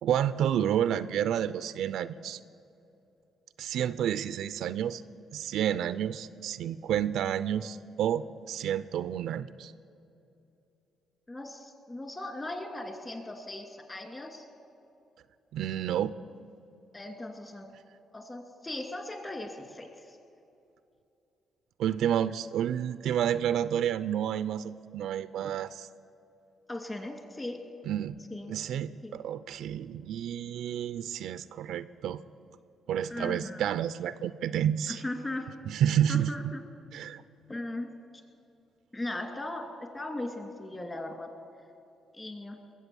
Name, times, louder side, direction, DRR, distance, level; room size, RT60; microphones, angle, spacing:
voice 1, 0.0-2.4 3.6-5.0 5.3-9.7 15.5-16.1 21.8-25.9 27.9-28.2 28.5-32.2 32.9-35.0 35.7-36.5 36.9-37.2, right 10 dB, 80° right, 14 dB, 0.4 m, -30 dB
voice 2, 11.3-14.5 16.9-17.7 18.1-20.2 26.7-27.6 28.3-28.5 29.0-29.2 33.1-33.7 34.9-35.5 36.1-36.6 37.5-37.9 38.9-39.6 39.9-41.3 42.1-42.6, left 2 dB, 20° left, 4 dB, 2.3 m, -38 dB
21.5 x 7.8 x 7.0 m, 2.7 s
cardioid pair, 90°, 0 cm